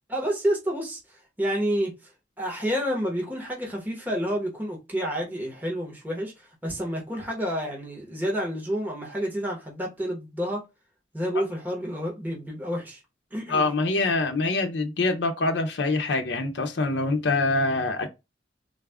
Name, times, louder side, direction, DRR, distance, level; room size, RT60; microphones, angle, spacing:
voice 1, 0.1-1.0 1.4-1.9 2.4-6.3 6.6-10.6 11.1-13.0 13.3-13.7, equal, 10° right, 1.2 m, -29 dB
voice 2, 13.5-18.1, left 3 dB, 70° left, 0.6 m, -25 dB
4.0 x 2.3 x 3.4 m
head